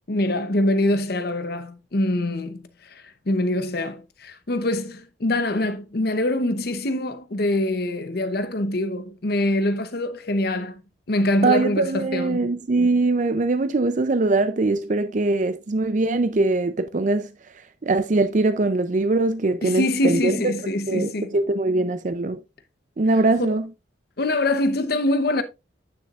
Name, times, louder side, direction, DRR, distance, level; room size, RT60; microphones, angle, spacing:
voice 1, 0.1-10.8 11.1-12.5 19.6-21.3 24.2-25.4, left 1 dB, 55° left, 0.8 m, -24 dB
voice 2, 11.4-17.3 17.8-22.4 23.0-23.7, right 2 dB, 40° right, 0.5 m, -22 dB
9.5 x 7.0 x 2.4 m
head